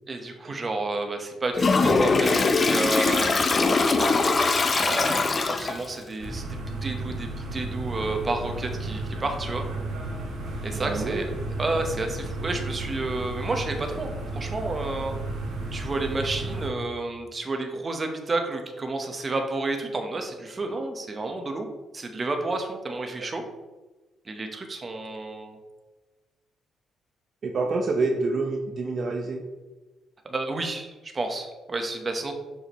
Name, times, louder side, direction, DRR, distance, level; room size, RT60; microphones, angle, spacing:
voice 1, 0.1-3.3 3.6-9.6 10.6-11.3 11.6-15.1 15.7-21.7 21.9-23.4 24.3-25.6 30.2-32.3, right 2 dB, 30° right, 4 dB, 1.0 m, -31 dB
Toilet flush, 1.6-5.9, left 3 dB, 35° left, 0.6 m, -22 dB
sound 1, 6.2-16.7, right 2 dB, 70° right, 2.0 m, -33 dB
voice 2, 10.8-11.2 27.4-29.4, right 3 dB, 50° right, 2 dB, 0.7 m, -27 dB
6.7 x 5.0 x 3.0 m, 1.2 s
cardioid pair, 90°, 0 cm